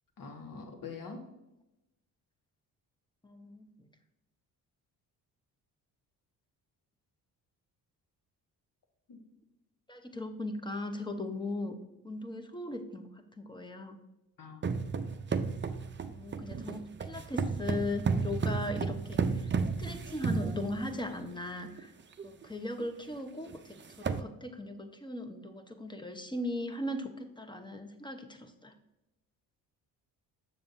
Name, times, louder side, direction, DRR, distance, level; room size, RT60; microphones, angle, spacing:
voice 1, 0.2-1.2 9.1-9.2 14.4-14.7, left 4 dB, 55° left, 3 dB, 1.5 m, -44 dB
voice 2, 3.2-3.7 9.9-11.8 12.0-13.0 13.4-14.0 16.1-19.5 19.8-21.9 22.2-23.6 24.0-28.7, left 1 dB, 10° left, 7 dB, 0.9 m, -38 dB
sound 1, 14.6-21.1 21.8-21.9 22.2-22.4 22.8-22.9 23.5-23.6 23.8-24.2, right 5 dB, 30° right, 0.6 m, -33 dB
7.4 x 6.7 x 2.6 m, 0.93 s
supercardioid pair, 60°, 41 cm